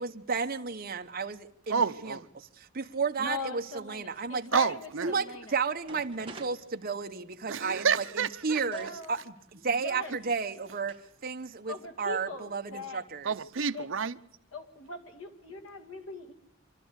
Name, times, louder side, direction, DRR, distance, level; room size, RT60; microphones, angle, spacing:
voice 1, 0.0-1.8 2.7-4.5 5.0-5.3 5.5-8.0 8.4-13.3, right 5 dB, 45° right, 1.0 m, -32 dB
voice 2, 1.7-2.3 4.5-5.1 7.5-8.6 13.2-14.2, right 6 dB, 70° right, 0.7 m, -29 dB
voice 3, 3.2-4.8 5.1-5.5 8.7-9.1 9.7-10.1 11.7-13.0 13.7-13.8 14.5-16.3, left 2 dB, 85° left, 2.3 m, -40 dB
sound 1, 5.4-5.5 5.8-7.4 8.7-8.9 10.0-10.1 10.9-11.1 11.4-11.9, right 3 dB, 25° right, 1.8 m, -49 dB
25.5 x 12.5 x 8.1 m
head